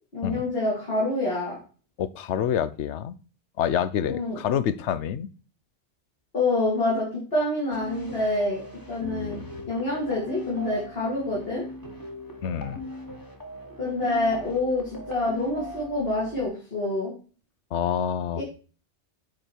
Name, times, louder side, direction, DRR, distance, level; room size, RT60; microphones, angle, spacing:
voice 1, 0.1-1.6 4.1-4.4 6.3-8.6 8.9-9.4 9.7-11.7 13.8-17.1 18.4-18.5, left 2 dB, 60° left, 3.4 m, -27 dB
voice 2, 2.0-3.2 3.6-5.3 9.1-9.5 12.4-12.8 17.7-18.4, left 9 dB, 85° left, 1.0 m, -27 dB
sound 1, 7.7-16.5, left 1 dB, 20° left, 1.3 m, -40 dB
9.5 x 5.0 x 4.5 m
omnidirectional pair, 1.1 m